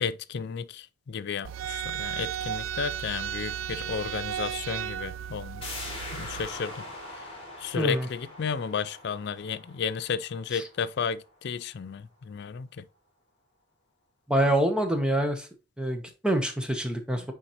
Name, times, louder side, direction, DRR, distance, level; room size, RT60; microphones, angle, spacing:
voice 1, 0.0-5.7 6.1-6.9 7.6-12.8, left 6 dB, 55° left, 0.4 m, -33 dB
sound 1, 1.4-6.5, right 10 dB, 75° right, 0.3 m, -34 dB
sound 2, 5.6-11.1 11.4-11.5, left 1 dB, 30° left, 3.3 m, -42 dB
voice 2, 7.8-8.1 10.5-10.6 14.3-15.5 15.8-17.3, right 1 dB, 5° right, 0.9 m, -26 dB
9.9 x 3.9 x 2.9 m
head